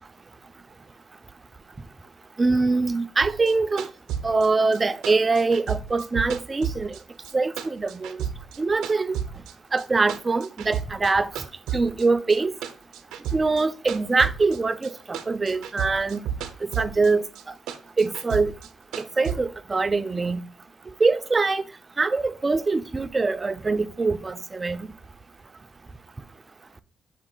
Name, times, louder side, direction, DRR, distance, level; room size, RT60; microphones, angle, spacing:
voice 1, 2.4-3.9 4.2-7.0 7.3-8.2 8.6-9.2 9.7-11.3 11.7-12.5 13.3-16.2 16.6-17.3 18.0-18.5 19.0-20.4 21.0-21.6 22.0-24.9, right 3 dB, 25° right, 0.3 m, -23 dB
sound 1, 3.2-7.3 7.6-9.5 9.8-11.1 11.4-14.9 15.1-17.1 17.4-19.4, right 9 dB, 90° right, 0.4 m, -32 dB
5.9 x 2.4 x 3.7 m
cardioid pair, 90°, 0 cm